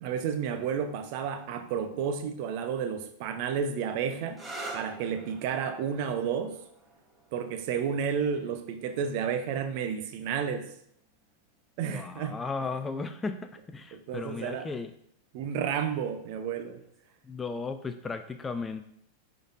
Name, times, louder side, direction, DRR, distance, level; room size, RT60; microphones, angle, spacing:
voice 1, 0.0-4.4 4.7-6.6 7.3-10.7 11.8-12.4 13.9-14.7 15.3-16.8, right 7 dB, 45° right, 9 dB, 0.6 m, -31 dB
sound 1, 4.3-11.7 12.7-13.3 16.8-17.1, right 2 dB, 10° right, 1.1 m, -47 dB
voice 2, 11.8-13.4 13.7-14.9 17.2-18.8, left 4 dB, 15° left, 9 dB, 0.4 m, -35 dB
10.0 x 3.9 x 2.5 m, 0.69 s
figure-of-eight pair, 90°, 0 cm